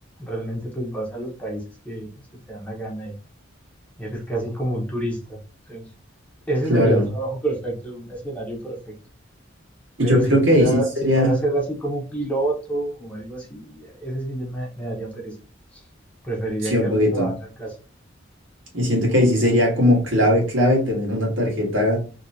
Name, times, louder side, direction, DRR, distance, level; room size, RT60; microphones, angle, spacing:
voice 1, 0.2-2.1 2.5-3.1 4.0-5.4 5.7-5.9 6.5-8.9 10.0-15.4 15.7-15.8 16.2-17.7, right 1 dB, 5° left, -2 dB, 1.0 m, -28 dB
voice 2, 6.7-7.0 10.0-11.3 16.6-17.3 18.7-22.0, left 1 dB, 80° right, -2 dB, 1.6 m, -19 dB
3.0 x 2.9 x 2.7 m, 0.35 s
head